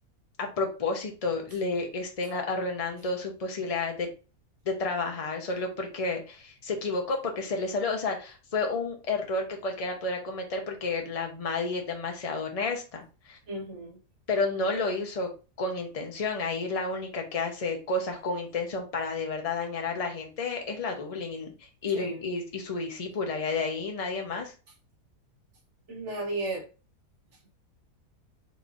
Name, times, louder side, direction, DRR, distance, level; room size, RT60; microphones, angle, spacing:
voice 1, 0.4-4.1 4.6-13.4 14.3-15.3 15.6-24.5, left 3 dB, 30° left, 0.7 m, -31 dB
voice 2, 13.5-14.0 21.9-22.2 25.9-26.7, right 2 dB, 50° right, 1.3 m, -34 dB
4.7 x 3.2 x 2.6 m
omnidirectional pair, 1.7 m